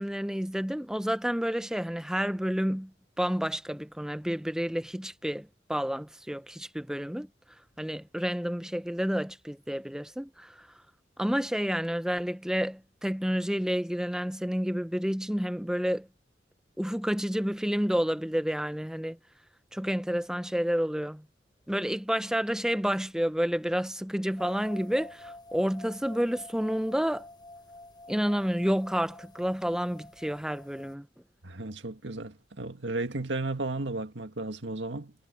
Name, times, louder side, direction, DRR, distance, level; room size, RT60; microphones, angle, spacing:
voice 1, 0.0-7.3 7.8-10.7 11.2-16.1 16.8-19.2 19.7-21.3 21.7-27.3 28.1-31.1, equal, 5° right, 0.7 m, -30 dB
sound 1, 24.4-30.9, left 2 dB, 25° left, 6.4 m, -49 dB
voice 2, 31.4-35.1, right 2 dB, 85° right, 2.0 m, -34 dB
head